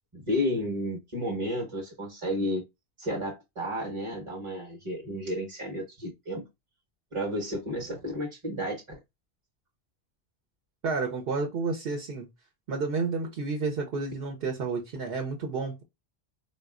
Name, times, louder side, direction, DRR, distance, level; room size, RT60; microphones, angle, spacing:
voice 1, 0.1-2.6 3.0-6.4 7.1-8.8, equal, 30° right, 0.9 m, -32 dB
voice 2, 10.8-12.3 12.7-15.8, right 4 dB, 65° right, 0.9 m, -30 dB
4.1 x 2.3 x 2.3 m
omnidirectional pair, 1.1 m